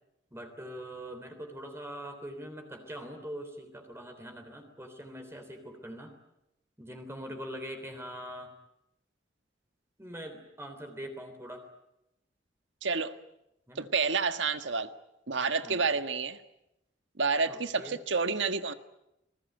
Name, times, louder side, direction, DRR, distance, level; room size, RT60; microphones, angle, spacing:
voice 1, 0.3-6.1 6.8-8.5 10.0-11.7 13.7-13.9 15.6-15.8 17.5-18.0, equal, 15° right, 3.4 m, -43 dB
voice 2, 12.8-13.1 13.7-14.9 15.3-16.4 17.2-18.7, right 4 dB, 90° right, 1.6 m, -29 dB
27.0 x 20.5 x 9.2 m
head